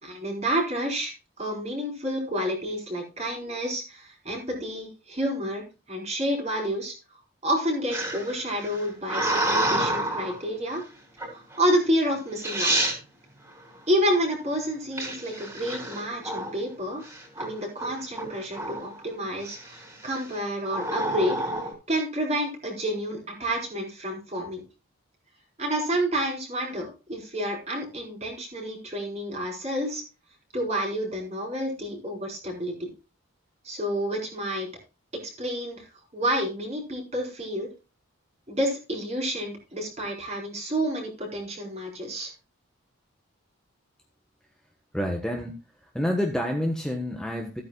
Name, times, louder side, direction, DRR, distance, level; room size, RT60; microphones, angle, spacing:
voice 1, 0.0-6.9 7.4-10.8 11.3-12.8 13.9-17.1 17.4-21.4 21.9-24.6 25.6-30.0 30.5-32.9 33.6-34.7 35.4-35.9 36.1-37.7 38.5-42.3, equal, 30° right, 1 dB, 4.6 m, -29 dB
sound 1, 7.9-10.4 11.2-11.6 12.2-12.3 12.4-13.0 15.0-16.6 17.1-17.5 17.8-19.0 19.5-19.9 20.7-21.7, right 1 dB, 15° right, 5.1 m, -28 dB
voice 2, 44.9-47.6, equal, 5° left, 2 dB, 1.3 m, -28 dB
15.5 x 9.2 x 2.4 m, 0.30 s
head